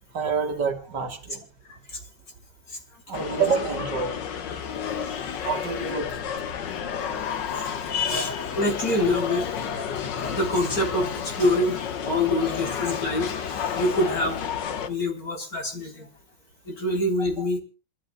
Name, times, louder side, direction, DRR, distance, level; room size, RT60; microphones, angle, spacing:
voice 1, 0.1-1.4 3.1-4.3 5.4-6.3 17.4-17.5, right 6 dB, 60° right, 6 dB, 2.3 m, -28 dB
sound 1, 3.1-14.9, left 7 dB, 70° left, 1.7 m, -31 dB
voice 2, 8.1-9.5 10.2-14.4 14.8-16.1 16.7-17.6, left 1 dB, 45° left, 1 dB, 4.0 m, -26 dB
28.0 x 13.0 x 2.2 m, 0.33 s
omnidirectional pair, 2.1 m